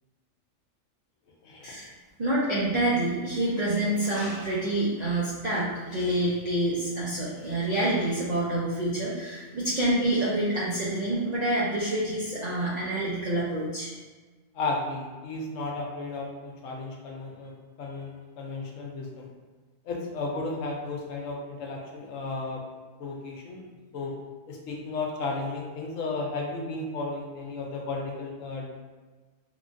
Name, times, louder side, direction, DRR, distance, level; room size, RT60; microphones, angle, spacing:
voice 1, 2.2-13.9, right 1 dB, 65° right, -7 dB, 0.4 m, -27 dB
voice 2, 14.5-17.5 17.8-19.3 19.8-22.6 23.0-23.7 23.9-24.1 24.5-28.7, left 3 dB, 80° left, -1 dB, 1.0 m, -34 dB
3.1 x 2.2 x 2.5 m, 1.3 s
omnidirectional pair, 1.3 m